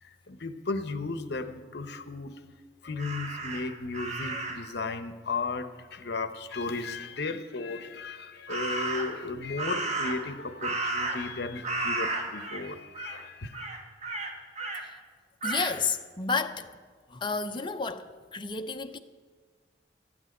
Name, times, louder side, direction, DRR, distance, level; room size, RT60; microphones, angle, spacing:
voice 1, 0.0-2.3 2.8-13.6, left 3 dB, 60° left, 0.8 m, -35 dB
Crow, 3.0-4.7 8.5-9.2 9.6-11.4 11.6-12.6 12.9-13.2 13.5-14.8 15.4-15.7, right 2 dB, 40° right, 1.5 m, -33 dB
voice 2, 15.4-16.8 17.1-19.0, left 4 dB, 25° left, 0.5 m, -31 dB
13.5 x 6.2 x 9.3 m
head